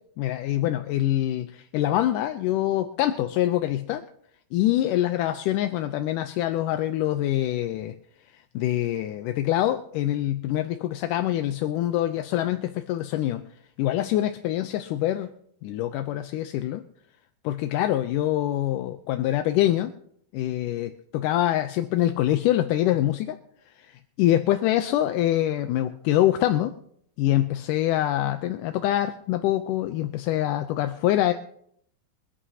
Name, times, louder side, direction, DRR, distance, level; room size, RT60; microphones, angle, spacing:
voice 1, 0.2-4.0 4.5-8.0 8.5-13.4 13.8-15.3 15.6-16.8 17.4-19.9 20.3-23.4 23.8-26.7 27.2-31.3, left 13 dB, 80° left, 8 dB, 2.0 m, -25 dB
27.0 x 11.0 x 2.8 m, 0.67 s
omnidirectional pair, 4.2 m